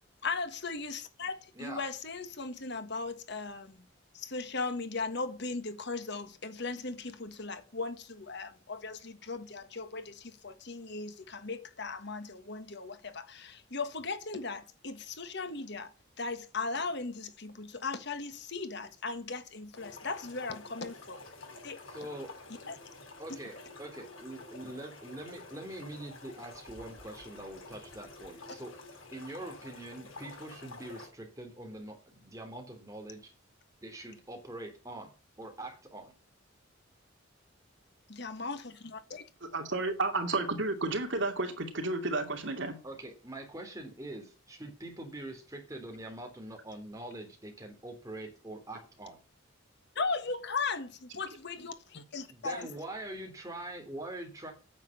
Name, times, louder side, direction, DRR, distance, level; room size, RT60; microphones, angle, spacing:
voice 1, 0.2-3.8 4.1-15.9 16.2-21.2 21.6-21.8 22.7-22.8 38.1-39.3 50.0-52.7, left 4 dB, 55° left, 1.5 m, -37 dB
voice 2, 1.5-1.9 21.9-22.3 23.2-28.7 29.1-33.3 33.8-35.1 35.4-36.1 42.8-49.1 52.3-54.5, right 1 dB, 15° right, 3.3 m, -44 dB
sound 1, 19.7-31.1, left 3 dB, 75° left, 5.9 m, -49 dB
voice 3, 39.4-42.8, right 2 dB, 65° right, 2.6 m, -32 dB
9.4 x 7.6 x 8.6 m
head